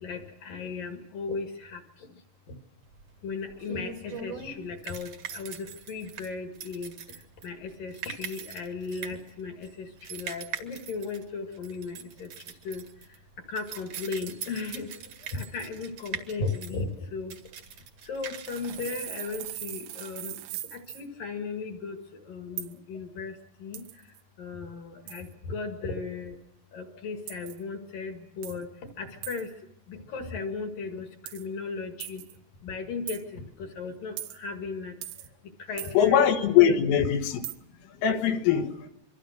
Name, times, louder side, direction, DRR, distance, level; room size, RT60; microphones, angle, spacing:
voice 1, 0.0-1.8 3.2-6.9 7.4-12.3 12.6-12.8 13.5-14.9 15.3-17.4 18.1-20.4 20.7-22.0 22.3-23.3 23.6-23.8 24.4-26.3 26.7-28.7 29.0-29.5 29.9-31.1 31.3-32.2 32.6-34.9 35.7-36.3 36.7-36.8, left 4 dB, 55° left, 2.7 m, -36 dB
sound 1, 2.9-19.6, right 7 dB, 55° right, 2.3 m, -42 dB
sound 2, 18.5-21.1 22.6-22.7 23.7-24.2 25.1-25.3 27.3-27.6 28.4-28.6 29.2-29.5 31.3-31.5 32.0-32.4 33.1-33.2 34.2-34.4 35.0-35.3 35.8-36.0 37.4-37.6, right 14 dB, 90° right, 3.8 m, -39 dB
voice 2, 36.0-37.4 38.0-38.9, left 9 dB, 80° left, 4.1 m, -22 dB
26.5 x 24.0 x 6.5 m
omnidirectional pair, 5.8 m